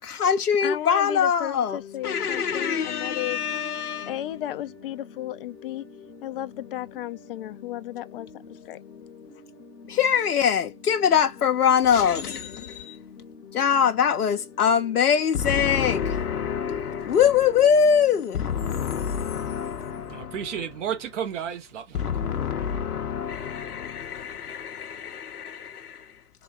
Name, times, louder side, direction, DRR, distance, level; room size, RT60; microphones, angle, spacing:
voice 1, 0.0-4.2 9.9-13.0 13.5-20.6 21.9-26.2, left 7 dB, 75° left, 0.8 m, -24 dB
voice 2, 0.6-3.4 4.1-5.8 6.2-8.8, left 13 dB, 40° left, 0.6 m, -34 dB
sound 1, 1.7-20.1, left 5 dB, 20° left, 1.0 m, -47 dB
voice 3, 20.1-22.3, right 8 dB, 50° right, 1.5 m, -32 dB
3.8 x 3.6 x 2.4 m
figure-of-eight pair, 120°, 45 cm